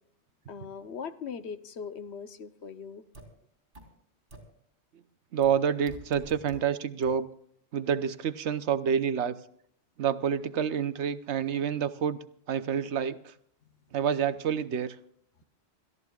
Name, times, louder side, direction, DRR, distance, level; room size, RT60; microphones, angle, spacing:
voice 1, 0.5-3.0, left 6 dB, 80° left, 10 dB, 1.1 m, -40 dB
sound 1, 3.1-3.2 3.7-3.8 4.3-4.4 5.4-5.5 5.9-6.6 7.0-7.1, right 2 dB, 60° right, 4.2 m, -46 dB
voice 2, 5.3-7.3 7.7-9.3 10.0-12.2 12.5-13.3 13.9-15.0, right 8 dB, 90° right, 12 dB, 1.1 m, -28 dB
29.0 x 13.5 x 2.4 m, 0.65 s
omnidirectional pair, 1.1 m